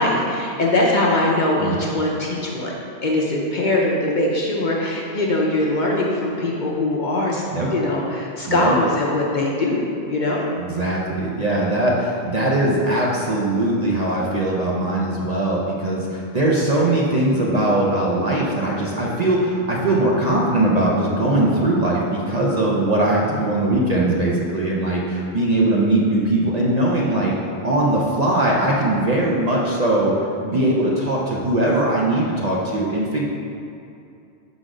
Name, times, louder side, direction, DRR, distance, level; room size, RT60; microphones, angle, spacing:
voice 1, 0.0-7.4 7.7-10.4, left 1 dB, 50° left, -3 dB, 0.8 m, -21 dB
voice 2, 1.6-1.9 7.5-7.7 8.5-8.7 10.6-30.1 30.4-33.3, right 1 dB, 40° right, -4 dB, 0.7 m, -20 dB
6.1 x 4.1 x 5.0 m, 2.6 s
omnidirectional pair, 1.2 m